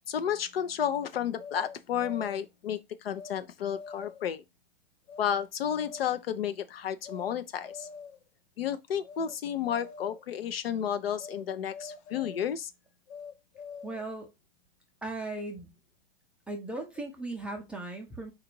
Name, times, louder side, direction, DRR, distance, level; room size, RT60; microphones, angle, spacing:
voice 1, 0.1-4.4 5.2-7.9 8.6-12.7, left 9 dB, 75° left, 0.7 m, -32 dB
sound 1, 1.4-2.5 3.1-3.4 3.7-4.3 5.1-5.3 5.7-6.2 7.0-7.3 7.6-8.3 9.0-9.3 9.6-10.3 11.2-11.4 11.7-12.5 13.1-14.1, left 5 dB, 35° left, 0.6 m, -45 dB
voice 2, 13.8-14.3 15.0-15.7 16.5-18.3, right 2 dB, 5° right, 0.3 m, -37 dB
4.0 x 2.5 x 4.4 m
hypercardioid pair, 135°, 30 cm